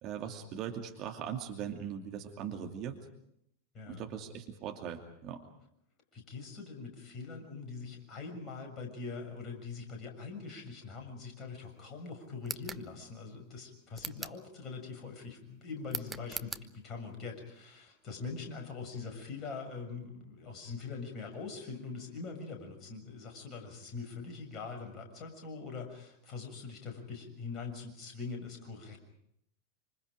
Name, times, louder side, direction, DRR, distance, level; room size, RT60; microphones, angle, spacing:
voice 1, 0.0-3.0 3.9-5.5, right 8 dB, 35° right, 3 dB, 2.6 m, -40 dB
voice 2, 3.7-4.1 6.1-29.0, left 4 dB, 30° left, 3 dB, 6.7 m, -43 dB
sound 1, 12.4-12.9 13.9-14.4 15.9-16.7, right 3 dB, 10° right, 0.9 m, -40 dB
27.0 x 26.0 x 5.1 m, 0.75 s
figure-of-eight pair, 90°, 0 cm